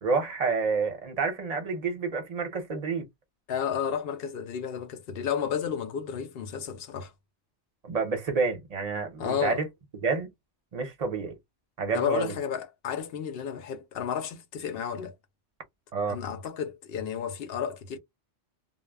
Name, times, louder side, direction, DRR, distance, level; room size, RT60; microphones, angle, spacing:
voice 1, 0.0-3.1 7.8-9.7 10.0-10.3 10.7-11.3 11.8-12.4 15.9-16.2, right 4 dB, 40° right, 0.7 m, -29 dB
voice 2, 3.5-7.1 9.2-9.6 11.9-15.1 16.1-18.0, left 7 dB, 65° left, 0.7 m, -32 dB
2.1 x 2.0 x 3.4 m
omnidirectional pair, 1.2 m